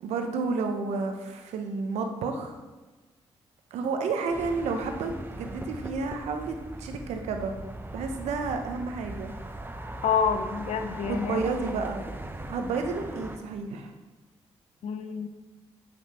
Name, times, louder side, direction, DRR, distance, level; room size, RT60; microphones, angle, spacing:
voice 1, 0.0-2.6 3.7-7.5 7.9-9.3 11.0-12.1 12.5-13.9, right 4 dB, 85° right, 5 dB, 0.8 m, -31 dB
sound 1, 4.3-13.4, right 1 dB, 20° right, 1.0 m, -39 dB
voice 2, 10.0-11.4 14.8-15.3, left 6 dB, 75° left, 7 dB, 0.7 m, -27 dB
8.0 x 5.9 x 4.3 m, 1.2 s
supercardioid pair, 50°, 11 cm